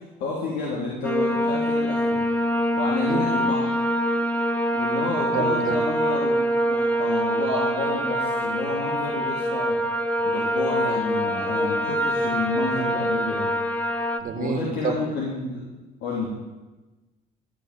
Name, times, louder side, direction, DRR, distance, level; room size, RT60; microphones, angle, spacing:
voice 1, 0.2-2.2 2.8-3.7 4.7-6.4 6.7-9.8 10.2-13.5 14.4-15.6 16.0-16.3, left 3 dB, 80° left, -4 dB, 3.1 m, -30 dB
sound 1, 1.0-14.2, equal, 10° left, 1.0 m, -24 dB
voice 2, 3.1-3.4 5.3-5.8 14.2-15.0, right 5 dB, 55° right, 4 dB, 1.8 m, -28 dB
14.0 x 6.3 x 9.1 m, 1.1 s
cardioid pair, 110°, 17 cm